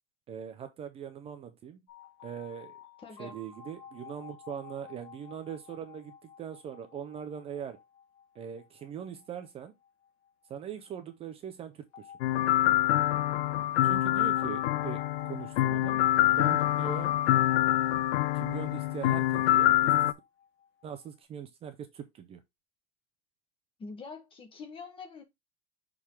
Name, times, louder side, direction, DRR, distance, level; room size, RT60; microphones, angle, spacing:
voice 1, 0.3-1.8 2.2-2.7 3.2-7.8 8.3-9.7 10.5-12.1 13.8-16.0 16.3-17.1 18.3-20.1 20.8-22.4, right 8 dB, 20° right, 0.5 m, -41 dB
sound 1, 1.9-10.7 11.9-21.1, left 7 dB, 35° left, 2.4 m, -52 dB
voice 2, 3.0-3.3 23.8-25.2, left 4 dB, 15° left, 1.1 m, -44 dB
sound 2, 12.2-20.1, left 14 dB, 85° left, 0.7 m, -26 dB
6.6 x 3.7 x 4.4 m
supercardioid pair, 165°, 33 cm